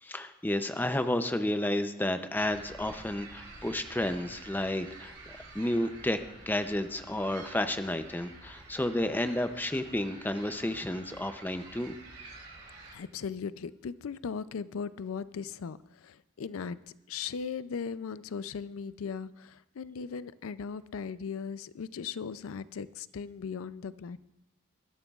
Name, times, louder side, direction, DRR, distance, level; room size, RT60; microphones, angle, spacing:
voice 1, 0.0-12.0, left 1 dB, 10° left, 9 dB, 0.5 m, -31 dB
sound 1, 2.4-12.9, right 3 dB, 60° right, 4.9 m, -49 dB
voice 2, 12.9-16.8 17.1-24.2, left 6 dB, 90° left, 16 dB, 0.4 m, -38 dB
20.5 x 13.0 x 2.4 m, 0.91 s
head